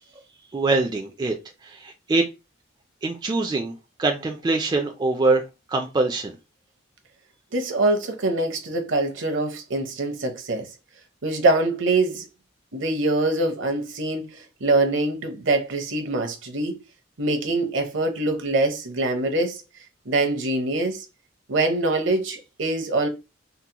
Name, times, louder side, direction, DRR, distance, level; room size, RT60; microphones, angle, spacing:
voice 1, 0.5-1.3 1.6-2.2 3.0-3.7 4.0-5.4 5.7-6.3, right 3 dB, 20° right, 0.3 m, -23 dB
voice 2, 7.5-10.7 11.2-12.2 12.7-16.8 17.2-19.6 20.1-21.0 21.5-23.1, right 2 dB, 65° right, 0.7 m, -24 dB
3.8 x 2.0 x 2.8 m
head